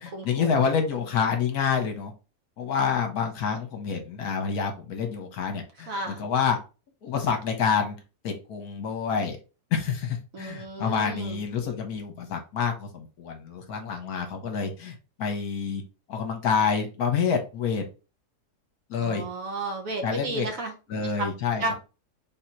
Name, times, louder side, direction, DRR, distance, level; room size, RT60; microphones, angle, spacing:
voice 1, 0.0-2.1 2.6-6.6 7.0-7.9 8.2-9.4 9.7-15.8 16.1-17.8 18.9-19.3 20.0-20.5 20.9-21.7, left 6 dB, 65° left, 5 dB, 1.3 m, -27 dB
voice 2, 5.9-6.3 10.3-11.4 19.0-20.7 21.2-21.3 21.6-21.7, right 2 dB, 60° right, 3 dB, 1.2 m, -32 dB
3.8 x 2.8 x 4.4 m, 0.31 s
omnidirectional pair, 1.8 m